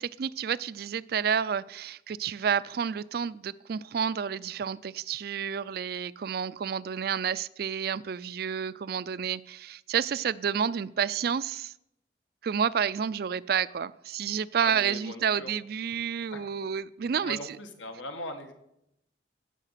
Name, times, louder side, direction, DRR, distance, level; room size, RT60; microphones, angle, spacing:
voice 1, 0.0-11.7 12.4-17.4, right 7 dB, 55° right, 18 dB, 0.3 m, -30 dB
voice 2, 14.6-15.5 16.3-16.4 17.2-18.5, left 2 dB, 90° left, 5 dB, 1.8 m, -40 dB
15.5 x 6.7 x 5.8 m, 0.80 s
head